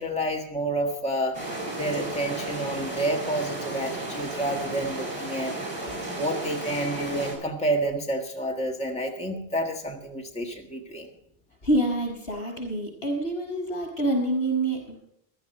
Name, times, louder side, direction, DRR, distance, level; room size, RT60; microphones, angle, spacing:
voice 1, 0.0-1.4 1.7-5.5 6.2-11.1, right 1 dB, 5° left, 1 dB, 1.6 m, -29 dB
sound 1, 1.3-7.3, right 2 dB, 30° right, 6.1 m, -33 dB
voice 2, 11.6-15.0, right 1 dB, 75° left, 0 dB, 6.1 m, -26 dB
15.0 x 12.5 x 4.4 m, 0.75 s
omnidirectional pair, 1.0 m